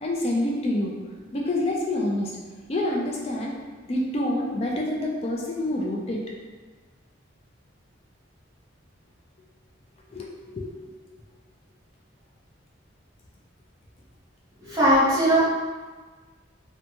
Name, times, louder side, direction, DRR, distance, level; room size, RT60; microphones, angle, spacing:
voice 1, 0.0-1.0 1.3-2.4 2.7-3.6 3.9-6.2 10.1-10.7, left 1 dB, 30° left, -2 dB, 0.4 m, -27 dB
voice 2, 14.6-15.4, equal, 15° right, -10 dB, 0.9 m, -19 dB
2.7 x 2.2 x 2.8 m, 1.4 s
head